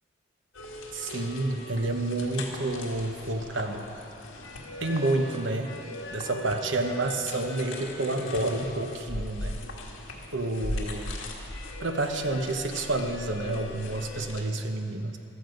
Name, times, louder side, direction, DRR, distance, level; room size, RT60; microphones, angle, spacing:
sound 1, 0.5-14.4, left 1 dB, 75° left, 1.7 m, -39 dB
voice 1, 0.9-3.8 4.8-5.7 6.1-9.6 10.3-11.2 11.8-15.2, right 2 dB, 65° right, 5 dB, 1.0 m, -29 dB
14.5 x 12.5 x 5.2 m, 2.8 s
head